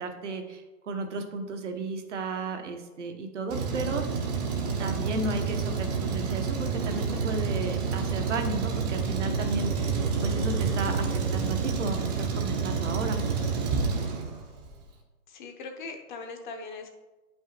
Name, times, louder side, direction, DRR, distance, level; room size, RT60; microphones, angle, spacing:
voice 1, 0.0-4.0 4.8-13.2, right 3 dB, 50° right, 6 dB, 1.1 m, -34 dB
Truck, 3.5-14.7, right 5 dB, 25° right, 0.9 m, -29 dB
voice 2, 15.3-16.9, left 4 dB, 30° left, 4 dB, 0.9 m, -40 dB
8.9 x 5.5 x 3.0 m, 1.1 s
figure-of-eight pair, 135°, 47 cm